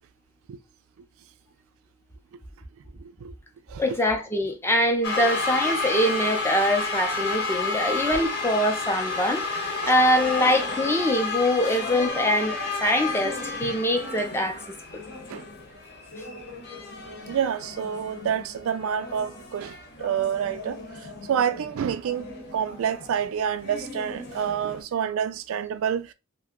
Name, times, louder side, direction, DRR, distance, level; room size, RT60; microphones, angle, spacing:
voice 1, 3.0-3.3 3.7-4.0 9.8-10.0 11.6-11.8 13.6-13.7 15.3-15.4 17.3-22.3 22.5-26.1, right 8 dB, 70° right, 0.3 m, -28 dB
voice 2, 3.8-12.5 12.8-14.6 14.9-15.0, equal, 10° left, 0.6 m, -24 dB
sound 1, 5.0-24.8, left 3 dB, 55° left, 1.0 m, -32 dB
2.6 x 2.2 x 3.6 m
head